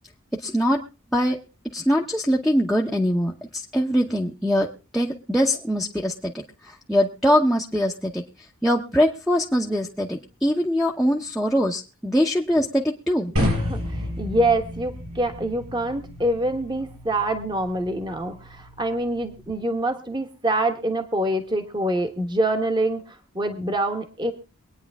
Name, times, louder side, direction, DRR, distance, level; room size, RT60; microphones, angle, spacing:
voice 1, 0.4-0.8 1.1-1.4 1.7-4.7 4.9-6.3 6.7-8.2 8.6-13.3, equal, ahead, -3 dB, 0.8 m, -22 dB
voice 2, 13.4-23.0 23.3-24.3, right 1 dB, 20° right, 6 dB, 1.2 m, -25 dB
sound 1, 13.4-19.5, left 1 dB, 90° right, 6.9 m, -31 dB
24.0 x 9.4 x 3.5 m, 0.32 s
head